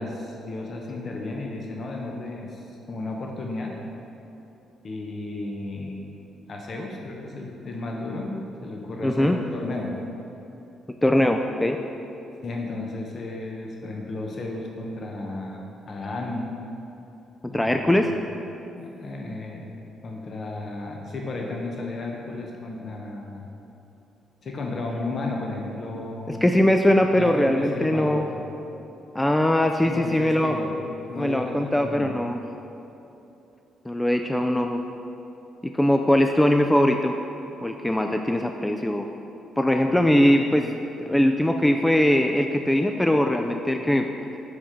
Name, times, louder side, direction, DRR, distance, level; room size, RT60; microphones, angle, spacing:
voice 1, 0.0-3.8 4.8-6.0 6.5-10.0 11.2-11.3 12.4-16.5 17.5-17.8 18.8-19.7 20.0-23.5 24.4-26.5 27.1-28.3 29.8-30.7 31.1-32.1, left 2 dB, 45° left, 0 dB, 0.8 m, -33 dB
voice 2, 9.0-9.4 11.0-11.8 17.5-18.1 26.3-28.3 29.1-30.6 31.1-32.4 33.9-34.8 35.6-37.1 37.6-39.1 39.6-44.1, left 1 dB, 10° left, 4 dB, 0.3 m, -21 dB
7.8 x 3.7 x 5.6 m, 2.9 s
cardioid pair, 90°, 0 cm